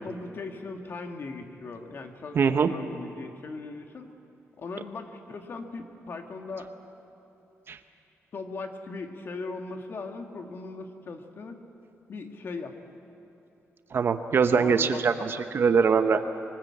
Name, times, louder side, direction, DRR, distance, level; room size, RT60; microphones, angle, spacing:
voice 1, 0.0-4.1 4.6-6.7 8.3-11.6 12.1-12.7 14.5-15.0 15.4-15.5, left 3 dB, 50° left, 4 dB, 2.0 m, -39 dB
voice 2, 2.3-2.7 7.7-7.8 13.9-16.2, right 5 dB, 50° right, 9 dB, 1.1 m, -22 dB
23.5 x 19.5 x 8.7 m, 2.9 s
cardioid pair, 125°, 5 cm